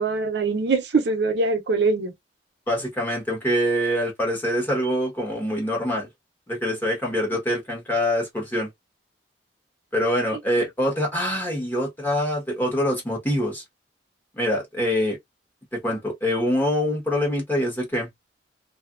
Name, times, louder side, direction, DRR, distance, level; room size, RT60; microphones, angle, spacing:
voice 1, 0.0-2.1, right 3 dB, 70° right, 0.6 m, -23 dB
voice 2, 2.7-6.1 6.5-8.7 9.9-13.6 14.3-15.2 15.7-18.1, equal, 10° left, 1.1 m, -24 dB
2.7 x 2.5 x 2.4 m
head